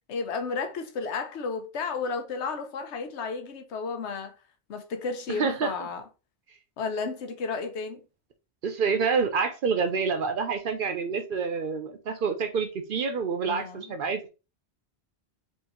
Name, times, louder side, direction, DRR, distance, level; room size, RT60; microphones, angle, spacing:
voice 1, 0.1-4.3 4.7-6.0 6.8-8.0 13.5-13.9, left 4 dB, 85° left, 1.0 m, -33 dB
voice 2, 5.3-5.9 8.6-14.2, right 5 dB, 55° right, 0.7 m, -27 dB
4.5 x 2.7 x 2.9 m
omnidirectional pair, 1.1 m